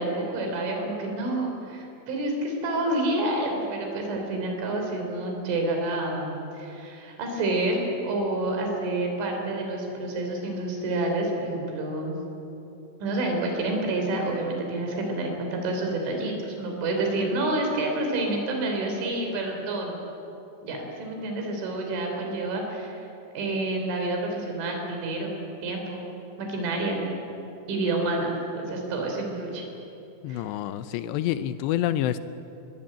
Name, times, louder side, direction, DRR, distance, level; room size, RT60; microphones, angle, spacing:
voice 1, 0.0-12.2 13.0-19.9 20.6-23.0 23.3-25.4 25.6-26.0 26.4-27.0 27.7-29.6 30.3-30.4, right 2 dB, 75° right, 2 dB, 6.0 m, -28 dB
voice 2, 30.2-32.2, left 12 dB, 80° left, 12 dB, 2.6 m, -27 dB
24.5 x 21.0 x 8.9 m, 3.0 s
omnidirectional pair, 5.5 m